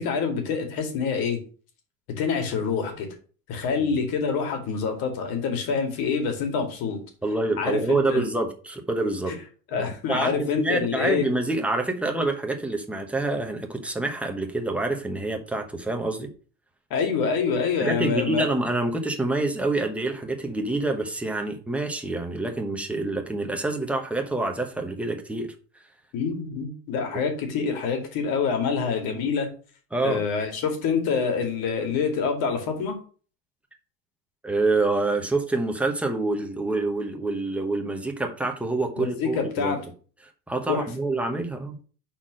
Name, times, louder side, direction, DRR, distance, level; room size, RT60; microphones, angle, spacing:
voice 1, 0.0-1.4 2.2-3.1 3.5-7.0 7.6-8.3 9.7-11.3 16.9-18.5 26.1-29.5 30.0-32.9 39.0-39.8 40.7-40.9, left 5 dB, 60° left, 5 dB, 2.4 m, -26 dB
voice 2, 7.2-9.3 9.7-16.3 17.8-25.5 29.9-30.2 34.4-39.7 40.5-41.8, right 2 dB, 5° right, 3 dB, 0.9 m, -27 dB
5.8 x 4.4 x 6.2 m, 0.39 s
cardioid pair, 150°, 41 cm